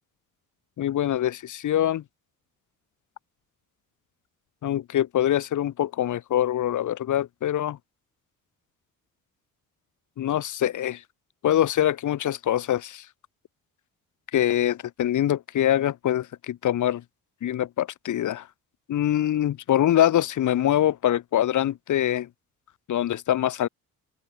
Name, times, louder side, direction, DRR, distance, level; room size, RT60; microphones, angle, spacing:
voice 1, 0.8-2.0 4.6-7.8 10.2-11.0 11.4-13.0 14.3-17.0 17.4-18.5 18.9-22.3 22.9-23.7, left 11 dB, 60° left, 1.3 m, -24 dB
open air
cardioid pair, 90°, 34 cm